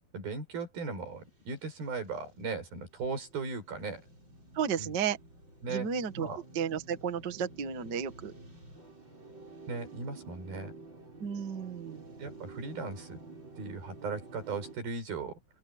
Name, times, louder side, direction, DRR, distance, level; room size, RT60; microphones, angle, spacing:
voice 1, 0.1-4.0 4.8-5.0 5.6-5.9 6.2-6.4 9.7-10.7 12.2-13.2 13.6-15.4, right 4 dB, 70° right, 8.3 m, -37 dB
sound 1, 1.5-14.8, right 3 dB, 30° right, 8.8 m, -51 dB
voice 2, 4.5-5.2 5.7-6.3 6.5-8.3 11.2-12.0, right 7 dB, 45° right, 1.5 m, -33 dB
open air
omnidirectional pair, 4.3 m